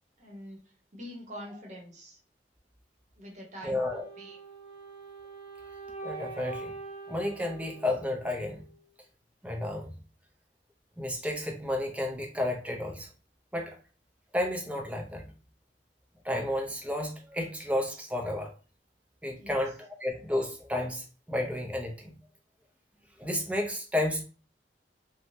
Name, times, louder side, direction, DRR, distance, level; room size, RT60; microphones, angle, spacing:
voice 1, 0.2-0.6 0.9-2.2 3.2-4.4 19.4-19.6, equal, 45° right, -1 dB, 0.9 m, -45 dB
voice 2, 3.6-4.1 6.0-6.7 7.1-8.6 9.4-10.0 11.0-13.1 13.5-13.8 14.3-15.2 16.2-18.5 19.2-22.2 23.2-24.2, left 1 dB, 10° right, 1 dB, 0.5 m, -32 dB
Wind instrument woodwind instrument, 3.9-8.9, right 3 dB, 30° left, 1.3 m, -44 dB
3.1 x 2.2 x 2.6 m, 0.37 s
head